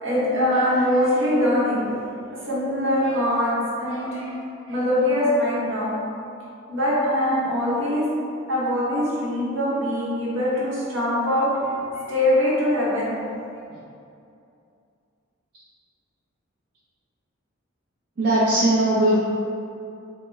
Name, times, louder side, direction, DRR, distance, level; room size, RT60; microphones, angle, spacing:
voice 1, 0.0-4.3 4.7-5.9 6.7-8.1 8.5-13.1, left 1 dB, 70° right, -8 dB, 0.9 m, -23 dB
voice 2, 18.2-19.2, right 1 dB, 50° right, -10 dB, 0.5 m, -19 dB
3.4 x 2.1 x 3.1 m, 2.6 s
head